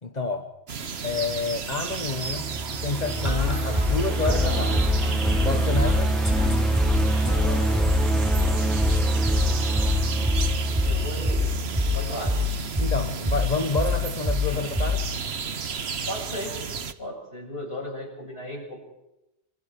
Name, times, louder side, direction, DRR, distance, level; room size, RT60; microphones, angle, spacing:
voice 1, 0.0-0.5 1.0-2.5 2.8-4.9 5.4-6.1 12.8-15.1, left 3 dB, 40° left, 5 dB, 1.5 m, -29 dB
sound 1, 0.7-16.9, right 6 dB, 75° right, 1.4 m, -33 dB
sound 2, 2.0-12.1, right 2 dB, ahead, 2.0 m, -25 dB
sound 3, 3.2-15.2, left 3 dB, 15° right, 3.5 m, -27 dB
voice 2, 10.9-11.5 11.9-12.4 15.8-16.7 17.0-18.8, left 1 dB, 70° left, 1 dB, 7.7 m, -35 dB
27.0 x 26.0 x 5.1 m, 0.92 s
omnidirectional pair, 1.1 m